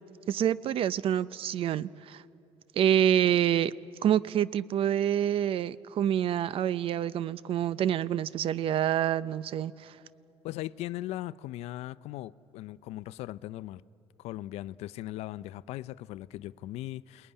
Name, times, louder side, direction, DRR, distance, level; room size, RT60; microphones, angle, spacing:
voice 1, 0.3-2.2 2.8-3.7 4.0-9.9, right 10 dB, 55° right, 0.6 m, -27 dB
voice 2, 10.4-13.8 14.2-17.3, left 15 dB, 70° left, 0.5 m, -39 dB
28.5 x 20.0 x 9.9 m
supercardioid pair, 90°, 11 cm